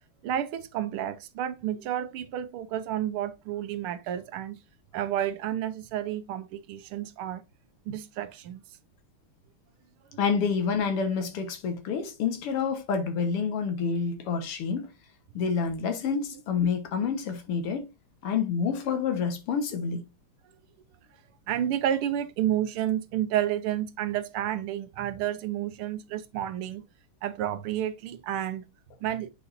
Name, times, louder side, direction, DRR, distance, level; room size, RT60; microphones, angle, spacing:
voice 1, 0.2-4.6 4.9-7.4 7.9-8.6 21.5-26.8 27.2-28.6 29.0-29.3, right 11 dB, 80° right, 1.6 m, -30 dB
voice 2, 10.2-14.9 15.3-17.9 18.2-20.1, left 6 dB, 85° left, 2.2 m, -28 dB
8.5 x 4.9 x 2.6 m
omnidirectional pair, 2.4 m